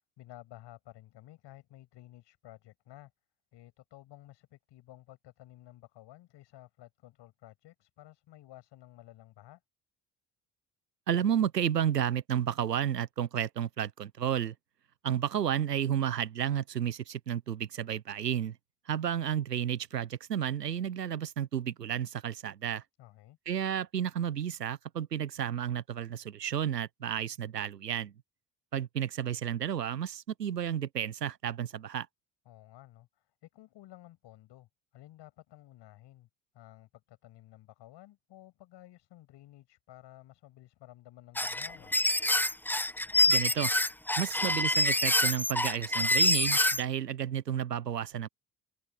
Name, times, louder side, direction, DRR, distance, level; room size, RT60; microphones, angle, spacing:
voice 1, 0.0-3.1 3.5-9.6 23.0-23.4 32.5-36.3 36.5-41.9, left 15 dB, 60° left, 7.7 m, -54 dB
voice 2, 11.1-14.5 15.0-18.5 18.9-22.8 23.5-28.1 28.7-32.1 43.3-43.7 44.2-48.3, right 9 dB, 90° right, 1.1 m, -32 dB
sound 1, 41.4-46.8, left 1 dB, 5° left, 1.2 m, -26 dB
figure-of-eight pair, 55°, 47 cm